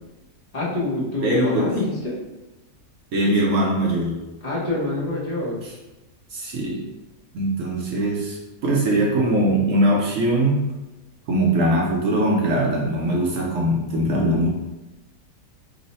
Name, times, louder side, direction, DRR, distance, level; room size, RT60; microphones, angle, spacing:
voice 1, 0.5-2.2 4.4-5.6, left 2 dB, 40° left, -6 dB, 0.6 m, -25 dB
voice 2, 1.2-1.7 3.1-4.2 5.6-5.7 6.3-6.9 7.3-10.6 11.3-14.5, right 1 dB, 65° right, -2 dB, 0.8 m, -21 dB
3.1 x 2.0 x 4.0 m, 1.0 s
omnidirectional pair, 1.7 m